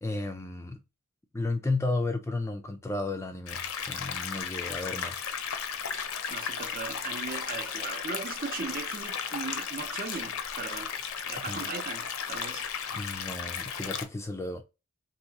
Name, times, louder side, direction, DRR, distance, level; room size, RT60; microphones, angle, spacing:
voice 1, 0.0-0.8 1.3-5.4 11.5-11.7 12.9-14.6, left 2 dB, 10° left, 0.4 m, -33 dB
sound 1, 3.5-14.0, left 7 dB, 65° left, 0.6 m, -35 dB
voice 2, 6.3-10.9 11.2-12.7, right 4 dB, 40° right, 0.7 m, -38 dB
3.0 x 2.9 x 4.6 m
head